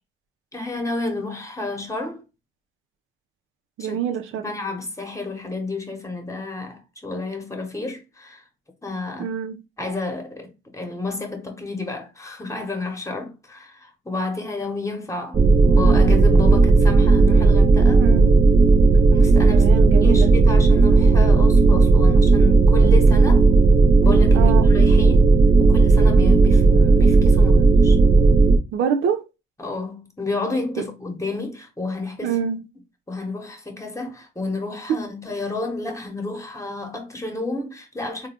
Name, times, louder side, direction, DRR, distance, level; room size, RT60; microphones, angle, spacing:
voice 1, 0.5-2.2 3.8-4.0 4.3-8.4 8.8-9.3 9.8-18.1 19.1-19.7 20.0-23.5 24.0-28.0 29.6-32.4 33.1-38.3, left 2 dB, 15° left, 1.1 m, -31 dB
voice 2, 3.8-4.4 9.2-9.6 18.0-18.4 19.5-20.3 24.3-24.7 28.7-29.2 32.2-32.6 34.9-35.0, right 7 dB, 80° right, 0.7 m, -25 dB
sound 1, 15.3-28.6, right 3 dB, 25° right, 0.6 m, -14 dB
3.5 x 2.3 x 3.5 m
cardioid pair, 90°, 20 cm